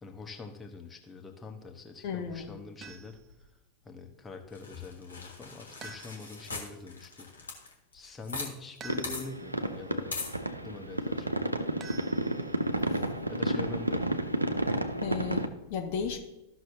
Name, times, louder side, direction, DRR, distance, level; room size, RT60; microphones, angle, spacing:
voice 1, 0.0-3.5 3.8-7.3 7.9-10.1 10.6-11.5 13.3-14.0, left 4 dB, 15° left, 3 dB, 1.1 m, -44 dB
voice 2, 2.0-2.5 12.9-13.0 15.0-16.2, left 6 dB, 50° left, 4 dB, 0.9 m, -34 dB
sound 1, 2.8-3.3 5.8-6.5 8.8-9.5 11.8-12.7, right 4 dB, 25° right, 0.6 m, -48 dB
sound 2, 4.5-8.5 8.8-8.9 9.0-9.2 10.1-10.3, left 3 dB, 75° left, 1.5 m, -40 dB
sound 3, 8.9-15.5, right 1 dB, 85° right, 0.6 m, -31 dB
14.0 x 6.1 x 2.7 m, 1.0 s
figure-of-eight pair, 90°, 0 cm